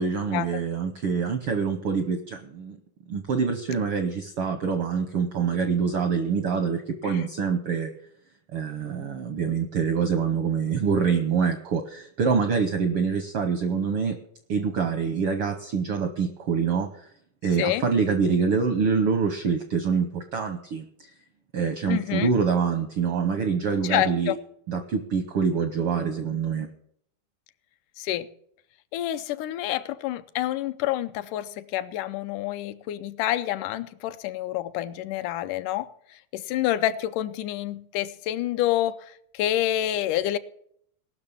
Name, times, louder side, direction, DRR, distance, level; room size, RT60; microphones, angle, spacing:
voice 1, 0.0-2.8 3.1-7.9 8.5-14.2 14.5-16.9 17.4-21.1 21.5-24.4 24.7-26.7, right 5 dB, 75° right, 1.2 m, -25 dB
voice 2, 21.9-22.3 23.8-24.4 28.0-28.3 28.9-40.4, left 13 dB, 80° left, 2.1 m, -28 dB
18.5 x 6.3 x 7.1 m
omnidirectional pair, 3.6 m